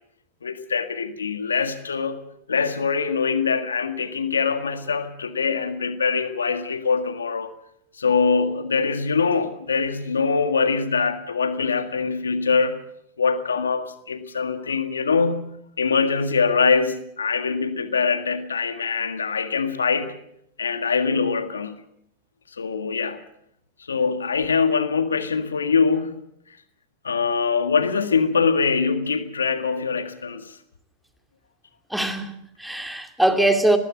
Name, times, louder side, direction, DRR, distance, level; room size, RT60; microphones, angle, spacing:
voice 1, 0.4-2.2 2.5-7.5 8.0-12.8 13.2-20.2 20.6-21.8 22.5-23.2 23.9-26.2 27.0-30.5, left 5 dB, 85° left, 1.8 m, -23 dB
voice 2, 31.9-33.8, right 1 dB, 5° right, 2.5 m, -22 dB
20.0 x 16.0 x 9.0 m
hypercardioid pair, 100°, 0 cm